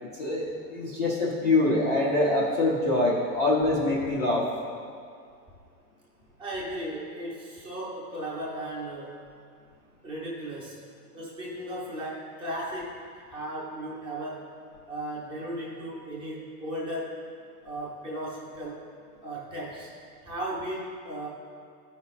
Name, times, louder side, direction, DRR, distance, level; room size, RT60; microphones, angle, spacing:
voice 1, 0.0-4.5, left 2 dB, 25° left, -6 dB, 0.4 m, -25 dB
voice 2, 6.4-9.2 10.0-10.8 11.1-13.0 13.3-14.5 14.9-17.2 17.6-18.9 19.2-19.9 20.2-21.3, right 1 dB, 10° right, -6 dB, 0.7 m, -36 dB
13.5 x 5.2 x 2.4 m, 2.3 s
supercardioid pair, 165°, 49 cm